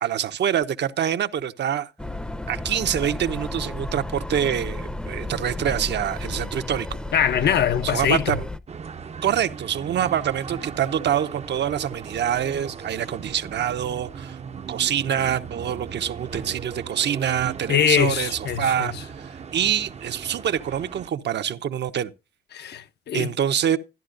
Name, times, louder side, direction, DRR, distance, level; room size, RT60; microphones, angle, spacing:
voice 1, 0.0-1.9 2.5-7.0 7.8-8.5 9.2-14.4 14.7-22.1 23.1-23.8, right 9 dB, 60° right, 0.9 m, -25 dB
sound 1, 2.0-8.6, left 1 dB, 5° left, 0.7 m, -33 dB
voice 2, 7.1-8.4 17.7-18.9 22.5-23.3, left 8 dB, 60° left, 0.7 m, -22 dB
sound 2, 8.7-21.1, right 6 dB, 35° right, 0.7 m, -38 dB
13.5 x 11.0 x 2.6 m
cardioid pair, 90°, 20 cm